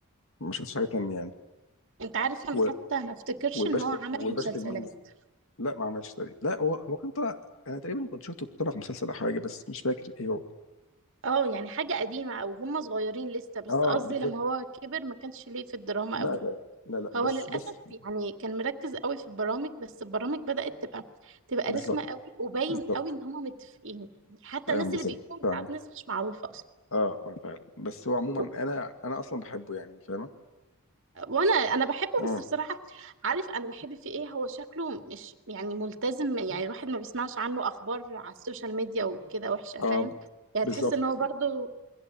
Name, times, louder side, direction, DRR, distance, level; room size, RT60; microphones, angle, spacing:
voice 1, 0.4-1.3 2.5-2.7 3.5-3.8 4.1-4.9 5.6-7.4 7.7-10.4 13.7-14.3 16.1-16.6 16.9-17.6 21.7-22.0 22.7-22.8 24.7-25.1 25.4-25.7 26.9-30.3 32.2-32.4 39.8-40.1 40.6-40.9, left 2 dB, 65° left, 7 dB, 2.2 m, -31 dB
voice 2, 2.0-2.6 2.9-4.8 11.2-16.4 17.1-17.6 18.0-21.0 21.5-25.8 26.1-26.6 28.4-28.5 31.2-40.1 40.5-41.7, right 4 dB, 60° right, 7 dB, 2.1 m, -32 dB
28.5 x 22.0 x 8.9 m, 1.0 s
head